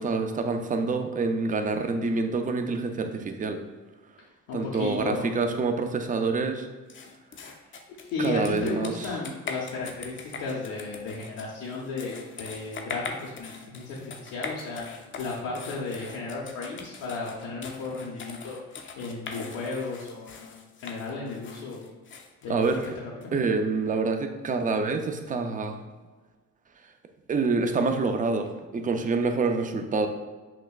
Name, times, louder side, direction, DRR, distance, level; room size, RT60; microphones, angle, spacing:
voice 1, 0.0-3.6 4.5-6.7 8.2-9.1 22.5-22.9 23.3-25.8 27.3-30.1, right 4 dB, 30° right, 6 dB, 0.4 m, -27 dB
voice 2, 4.5-5.3 7.9-18.6 19.0-21.8 22.4-22.7 23.0-23.3, left 3 dB, 85° left, -5 dB, 0.7 m, -34 dB
sound 1, 6.9-23.3, left 4 dB, 40° left, 0.5 m, -42 dB
5.8 x 2.1 x 2.3 m, 1.3 s
cardioid pair, 90°, 30 cm